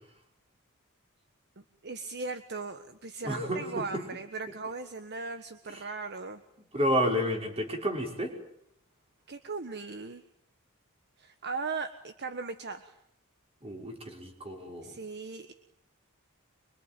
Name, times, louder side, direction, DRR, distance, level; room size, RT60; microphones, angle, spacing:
voice 1, 1.8-6.4 9.3-10.2 11.2-13.0 14.8-15.5, right 4 dB, 50° right, 9 dB, 1.4 m, -38 dB
voice 2, 3.2-4.0 5.7-5.8 6.7-8.3 13.6-14.9, equal, 30° right, 3 dB, 5.5 m, -31 dB
25.0 x 24.5 x 9.2 m, 0.72 s
head